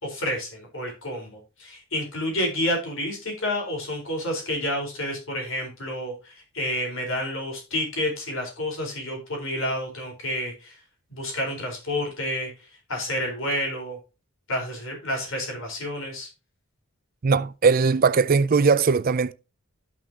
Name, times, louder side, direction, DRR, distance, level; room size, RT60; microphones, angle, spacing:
voice 1, 0.0-10.8 11.1-14.0 14.5-16.3, left 1 dB, 60° left, 4.5 m, -29 dB
voice 2, 17.2-19.3, right 5 dB, 40° right, 0.4 m, -20 dB
13.0 x 6.3 x 2.9 m
head